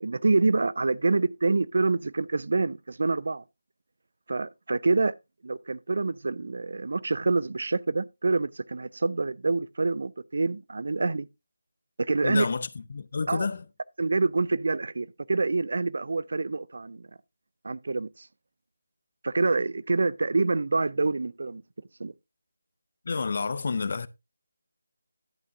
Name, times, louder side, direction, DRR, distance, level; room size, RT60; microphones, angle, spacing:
voice 1, 0.0-3.4 4.3-5.2 5.4-11.3 12.0-12.5 13.3-13.5 14.0-17.1 17.6-18.3 19.2-21.6 22.0-22.1, right 3 dB, 55° right, 0.4 m, -26 dB
voice 2, 12.2-13.6 23.1-24.1, left 4 dB, 45° left, 0.5 m, -29 dB
11.0 x 8.4 x 2.6 m
figure-of-eight pair, 155°, 0 cm